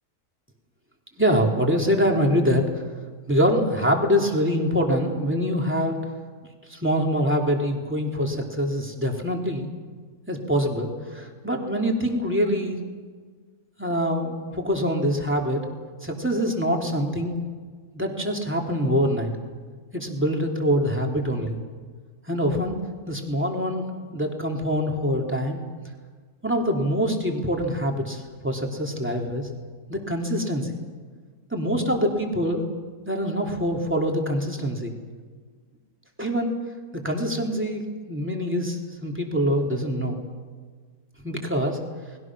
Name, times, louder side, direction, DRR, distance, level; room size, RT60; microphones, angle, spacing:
voice 1, 1.2-2.8 3.3-6.0 6.7-9.7 10.3-12.8 13.8-15.7 16.0-17.4 17.9-19.3 19.9-21.6 22.3-22.8 23.1-23.8 24.1-25.6 26.4-29.5 29.9-30.8 31.5-32.6 33.1-34.9 36.2-36.6 36.9-40.2 41.2-41.8, equal, 5° right, 1 dB, 3.1 m, -24 dB
29.5 x 21.0 x 6.2 m, 1.5 s
omnidirectional pair, 1.6 m